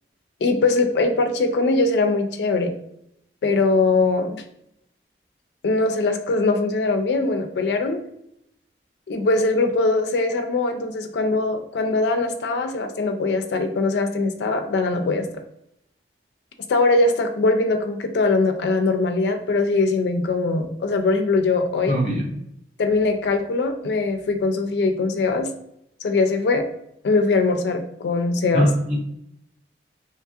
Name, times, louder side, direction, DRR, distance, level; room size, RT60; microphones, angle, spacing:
voice 1, 0.4-2.7 3.4-4.4 5.6-8.0 9.1-15.3 16.7-22.0 22.8-25.5 26.0-26.7 27.0-28.7, left 3 dB, 75° left, 5 dB, 0.3 m, -21 dB
voice 2, 21.9-22.3 28.5-29.2, equal, 45° right, -3 dB, 0.7 m, -22 dB
2.8 x 2.3 x 2.6 m, 0.77 s
head